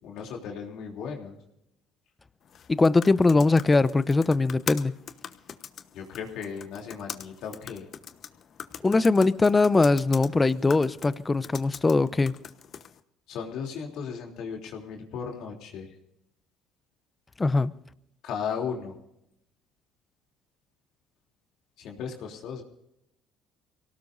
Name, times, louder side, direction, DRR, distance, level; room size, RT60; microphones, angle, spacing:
voice 1, 0.0-1.4 5.9-7.8 13.3-15.9 18.2-18.9 21.8-22.6, left 6 dB, 70° left, 3.3 m, -36 dB
sound 1, 2.4-13.0, left 8 dB, 50° left, 1.1 m, -42 dB
voice 2, 2.7-4.9 8.8-12.3 17.4-17.7, left 3 dB, 20° left, 0.7 m, -21 dB
24.5 x 18.0 x 2.7 m
supercardioid pair, 85°, 0 cm